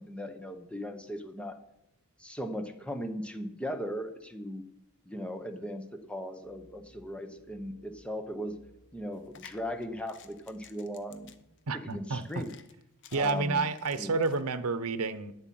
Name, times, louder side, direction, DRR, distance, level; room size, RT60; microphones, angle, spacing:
voice 1, 0.0-1.6 2.2-4.6 5.1-8.6 8.9-11.3 11.7-12.5 13.1-13.7 14.0-14.1, equal, 5° left, 7 dB, 1.0 m, -38 dB
sound 1, 6.4-11.7, equal, 75° left, 2.9 m, -61 dB
sound 2, 9.1-14.4, left 9 dB, 55° left, 0.8 m, -55 dB
voice 2, 11.7-12.4 13.1-15.3, right 4 dB, 85° right, 14 dB, 0.8 m, -30 dB
9.8 x 8.0 x 7.7 m, 0.81 s
head